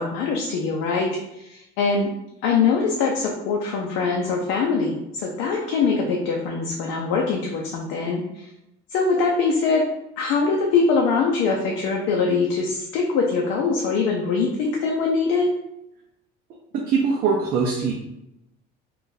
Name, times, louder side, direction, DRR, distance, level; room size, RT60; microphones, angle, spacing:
voice 1, 0.0-2.1 2.4-8.5 8.9-9.9 10.2-15.5, left 4 dB, 70° left, -1 dB, 0.6 m, -23 dB
voice 2, 16.9-17.9, right 5 dB, 45° right, -1 dB, 0.5 m, -21 dB
2.6 x 2.4 x 3.8 m, 0.86 s
cardioid pair, 135°, 21 cm